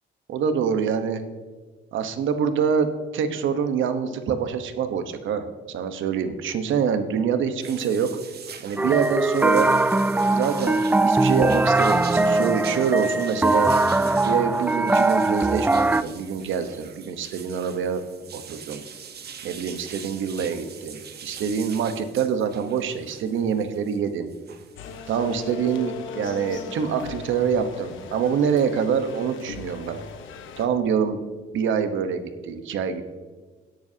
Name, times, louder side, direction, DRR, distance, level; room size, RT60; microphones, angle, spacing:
voice 1, 0.3-1.2 1.9-8.1 8.6-9.7 10.3-13.7 14.2-18.0 18.3-18.8 19.4-24.3 25.1-30.0 30.6-31.2 31.5-33.0, right 7 dB, 75° right, 9 dB, 1.1 m, -25 dB
sound 1, 7.6-25.5, right 7 dB, 55° right, 1.2 m, -42 dB
sound 2, 8.8-16.0, right 2 dB, 10° right, 0.3 m, -21 dB
sound 3, 24.8-30.7, left 6 dB, 80° left, 1.2 m, -38 dB
17.0 x 10.5 x 2.8 m, 1.4 s
cardioid pair, 90°, 20 cm